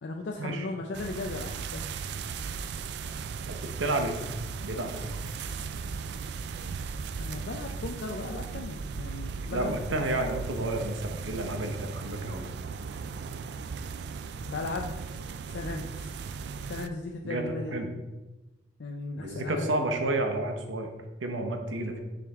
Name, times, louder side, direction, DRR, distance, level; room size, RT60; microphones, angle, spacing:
voice 1, 0.0-1.9 7.2-10.0 14.5-15.0 15.5-16.1 16.7-17.8 18.8-19.8, left 3 dB, 60° left, 2 dB, 0.4 m, -36 dB
sound 1, 0.9-16.9, right 5 dB, 60° right, 0.3 m, -37 dB
voice 2, 3.5-4.1 4.6-5.2 9.5-12.4 17.2-17.9 19.2-20.9 21.2-22.0, right 2 dB, 80° right, 4 dB, 0.9 m, -31 dB
6.3 x 5.1 x 3.5 m, 1.1 s
head